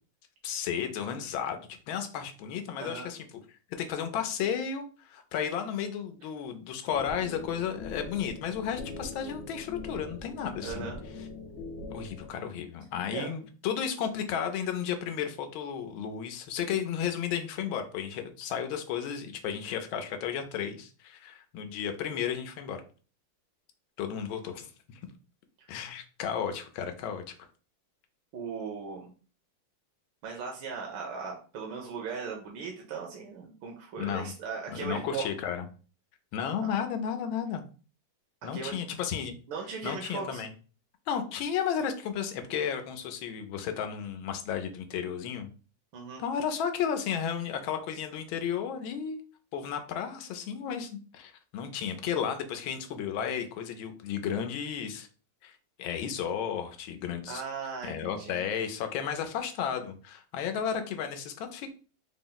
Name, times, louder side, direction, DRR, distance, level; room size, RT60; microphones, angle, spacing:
voice 1, 0.4-3.2 3.8-10.9 11.9-22.8 24.0-25.0 25.7-27.3 34.0-34.3 34.7-35.6 36.3-37.6 38.4-39.3 39.8-40.5 41.1-45.5 46.2-49.2 49.5-55.1 55.4-55.5 55.8-57.4 57.8-61.7, left 8 dB, 90° left, 6 dB, 1.4 m, -33 dB
sound 1, 6.9-12.3, left 3 dB, 70° left, 1.0 m, -42 dB
voice 2, 10.6-11.0 13.1-13.3 25.6-25.7 28.3-29.1 30.2-35.3 38.5-38.8 39.5-40.4 45.9-46.2 57.3-58.4, right 5 dB, 80° right, 0 dB, 1.5 m, -38 dB
4.2 x 2.0 x 3.8 m, 0.37 s
omnidirectional pair, 2.2 m